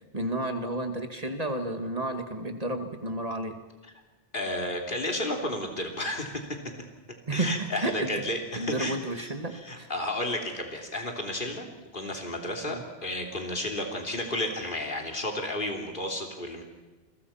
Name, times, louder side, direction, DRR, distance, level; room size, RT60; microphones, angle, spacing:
voice 1, 0.1-3.6 7.3-8.2 8.6-9.9 12.6-12.8, right 2 dB, 35° right, 6 dB, 2.2 m, -31 dB
voice 2, 4.3-6.6 7.3-11.7 11.9-16.6, left 1 dB, 55° left, 2 dB, 3.4 m, -32 dB
29.0 x 22.0 x 5.8 m, 1.2 s
omnidirectional pair, 1.1 m